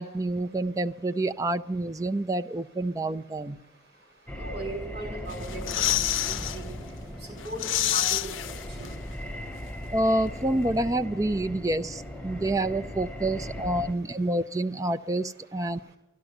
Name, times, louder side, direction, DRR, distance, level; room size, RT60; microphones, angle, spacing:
voice 1, 0.0-3.6 9.9-15.9, right 1 dB, 20° right, 8 dB, 0.5 m, -28 dB
sound 1, 4.3-13.9, equal, 5° left, 0.8 m, -38 dB
voice 2, 4.4-6.7 7.4-8.2, right 2 dB, 60° right, 3 dB, 5.6 m, -37 dB
sound 2, 5.3-6.6 7.0-7.1 7.4-9.1 9.4-9.5, left 12 dB, 85° left, 0.6 m, -28 dB
12.5 x 12.0 x 7.9 m, 0.92 s
head